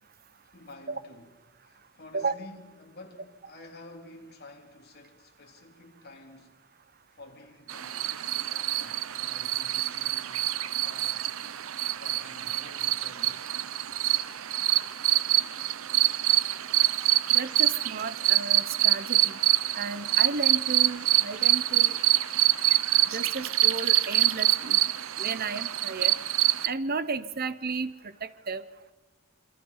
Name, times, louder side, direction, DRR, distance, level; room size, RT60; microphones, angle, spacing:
voice 1, 0.5-6.6 7.1-10.4 10.8-11.3 11.9-13.5, left 2 dB, 50° left, 3.3 m, -50 dB
sound 1, 7.7-26.7, right 15 dB, 80° right, 0.7 m, -25 dB
voice 2, 17.3-19.4 19.7-22.0 23.1-24.9 25.2-26.1 26.6-28.6, right 4 dB, 45° right, 0.9 m, -33 dB
27.0 x 23.5 x 5.6 m
head